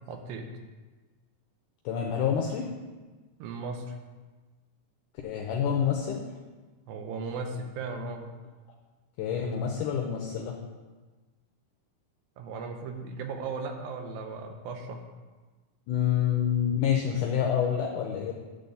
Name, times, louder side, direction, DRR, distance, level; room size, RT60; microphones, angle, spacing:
voice 1, 0.1-0.5 3.4-4.0 6.9-8.3 12.4-15.0, right 4 dB, 85° right, 4 dB, 2.6 m, -36 dB
voice 2, 1.9-2.7 5.2-6.3 9.2-10.6 15.9-18.3, left 8 dB, 75° left, 0 dB, 2.1 m, -27 dB
11.5 x 3.9 x 6.9 m, 1.3 s
omnidirectional pair, 4.0 m